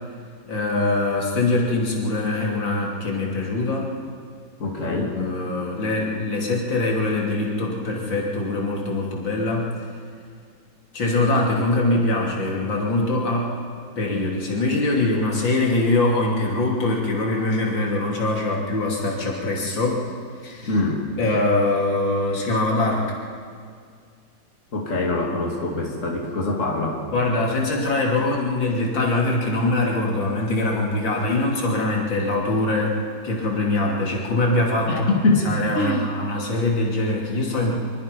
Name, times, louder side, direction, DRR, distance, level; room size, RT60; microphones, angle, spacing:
voice 1, 0.5-3.9 4.8-9.7 10.9-13.5 14.0-20.1 20.4-20.7 21.2-23.1 27.1-33.0 33.2-35.1 35.5-37.8, left 2 dB, 90° left, -2 dB, 3.7 m, -23 dB
voice 2, 4.6-5.1 20.6-21.0 24.7-27.0 34.9-35.4 35.7-36.1, left 2 dB, 40° left, -1 dB, 2.9 m, -23 dB
25.0 x 22.5 x 5.4 m, 2.1 s
omnidirectional pair, 2.0 m